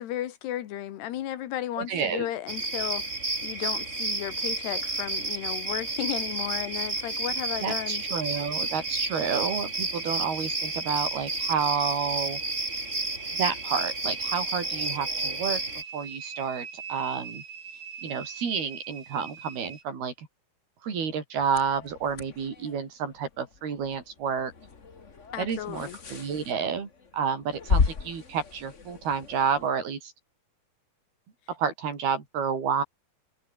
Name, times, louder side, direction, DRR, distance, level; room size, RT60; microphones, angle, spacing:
voice 1, 0.0-3.1 3.4-8.0 25.3-26.0, left 12 dB, 80° left, 3.7 m, -34 dB
voice 2, 1.8-2.3 7.6-12.4 13.3-15.6 15.9-17.4 18.0-20.3 20.8-24.5 25.4-30.1 31.5-32.8, right 6 dB, 70° right, 6.1 m, -30 dB
sound 1, 2.5-15.8, right 2 dB, 20° right, 4.2 m, -31 dB
sound 2, 6.1-19.8, right 6 dB, 90° right, 6.6 m, -44 dB
sound 3, 21.4-29.7, left 4 dB, 50° left, 0.8 m, -34 dB
omnidirectional pair, 4.7 m